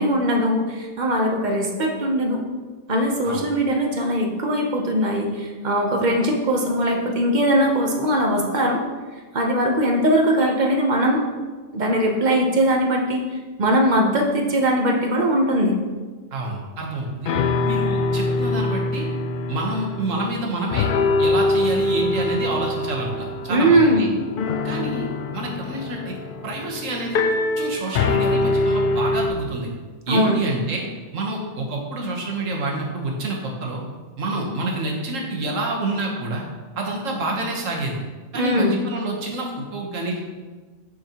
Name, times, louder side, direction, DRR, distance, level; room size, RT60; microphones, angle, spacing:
voice 1, 0.0-2.4 2.9-8.8 9.3-11.2 11.7-13.2 13.6-15.8 23.5-24.1 30.1-30.4 38.3-38.9, equal, 40° right, 1 dB, 0.9 m, -20 dB
voice 2, 16.3-17.4 17.6-19.1 19.5-20.9 21.2-24.1 24.6-25.1 25.3-26.1 26.4-27.2 27.6-29.7 30.1-30.8 31.1-33.8 34.2-36.4 36.8-38.0 38.3-40.2, right 2 dB, 80° right, -1 dB, 1.5 m, -28 dB
sound 1, 17.0-17.1 17.2-20.4 20.7-29.3, left 2 dB, 65° left, 0.5 m, -24 dB
6.7 x 6.2 x 2.9 m, 1.4 s
omnidirectional pair, 1.3 m